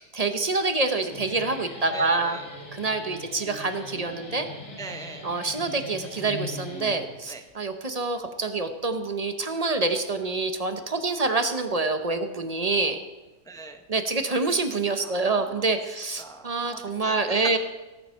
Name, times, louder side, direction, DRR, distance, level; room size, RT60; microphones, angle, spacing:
voice 1, 0.1-2.4 2.7-4.5 5.2-13.0 13.9-17.6, right 3 dB, 30° right, 7 dB, 0.8 m, -26 dB
Guitar, 0.9-7.5, left 2 dB, 80° left, 3.3 m, -41 dB
voice 2, 1.9-2.5 4.8-5.2 7.3-7.4 13.4-13.8 15.0-15.7 16.2-17.6, right 4 dB, 5° left, 5 dB, 0.7 m, -40 dB
18.0 x 7.3 x 5.7 m, 1.1 s
omnidirectional pair, 1.6 m